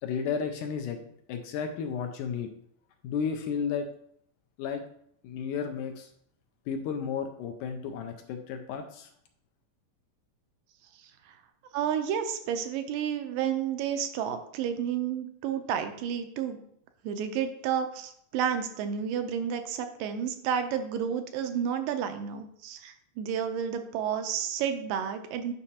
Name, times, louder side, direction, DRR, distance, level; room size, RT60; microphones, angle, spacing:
voice 1, 0.0-1.0 1.3-2.5 3.0-3.9 4.6-4.8 5.2-6.1 6.7-9.1, left 6 dB, 80° left, 5 dB, 2.0 m, -33 dB
voice 2, 11.7-16.6 17.0-25.5, right 8 dB, 80° right, 7 dB, 2.3 m, -31 dB
9.7 x 5.7 x 2.8 m, 0.69 s
omnidirectional pair, 4.0 m